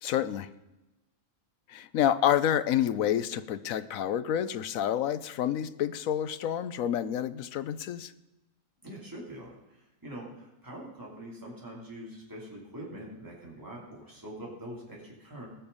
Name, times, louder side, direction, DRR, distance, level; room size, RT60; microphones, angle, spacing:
voice 1, 0.0-0.5 1.7-8.1, left 10 dB, 80° left, 14 dB, 1.1 m, -28 dB
voice 2, 8.8-15.5, right 1 dB, 15° right, -4 dB, 3.1 m, -44 dB
19.0 x 6.8 x 5.5 m, 1.0 s
omnidirectional pair, 1.4 m